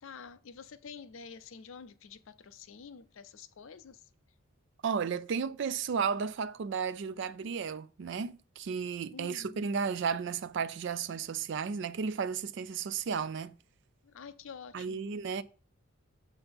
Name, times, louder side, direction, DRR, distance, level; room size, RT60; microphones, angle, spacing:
voice 1, 0.0-4.0 9.1-9.6 14.0-15.1, left 6 dB, 65° left, 0.5 m, -48 dB
voice 2, 4.8-13.5 14.7-15.4, right 6 dB, 55° right, 0.3 m, -33 dB
6.8 x 5.6 x 3.5 m
head